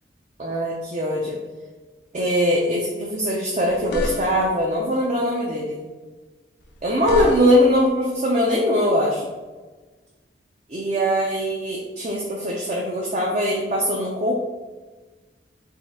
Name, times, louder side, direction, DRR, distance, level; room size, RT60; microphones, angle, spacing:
voice 1, 0.4-1.4 2.1-5.8 6.8-9.3 10.7-14.3, equal, 40° right, -2 dB, 0.5 m, -21 dB
sound 1, 3.6-4.6 6.6-7.8, left 1 dB, 85° left, 0.6 m, -31 dB
4.3 x 2.3 x 3.5 m, 1.3 s
head